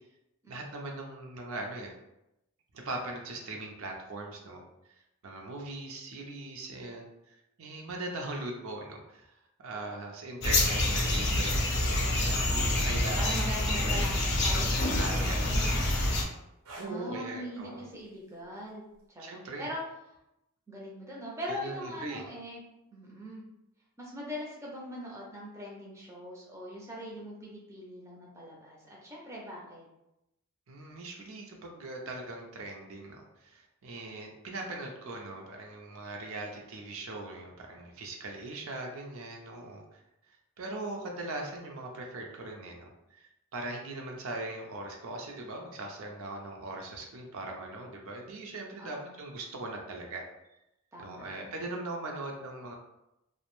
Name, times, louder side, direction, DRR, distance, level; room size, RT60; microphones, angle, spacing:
voice 1, 0.5-1.9 2.7-9.3 9.6-13.9 15.0-15.5 16.8-17.8 19.2-19.7 21.5-22.2 30.7-40.0 40.3-42.9 43.2-50.2 51.0-52.7, right 2 dB, 70° right, 1 dB, 0.5 m, -40 dB
sound 1, 10.4-16.2, left 1 dB, 45° left, 0.5 m, -27 dB
sound 2, 11.4-11.7 13.7-14.0 15.2-15.7 16.6-17.0 18.4-18.6, right 2 dB, 85° right, 0.9 m, -47 dB
voice 2, 12.5-12.8 13.2-16.3 16.8-18.8 19.1-19.8 20.7-22.6 22.9-23.4 24.0-29.9 48.8-49.1 50.9-51.5, equal, 10° right, -4 dB, 0.4 m, -41 dB
2.5 x 2.0 x 3.0 m, 0.88 s
head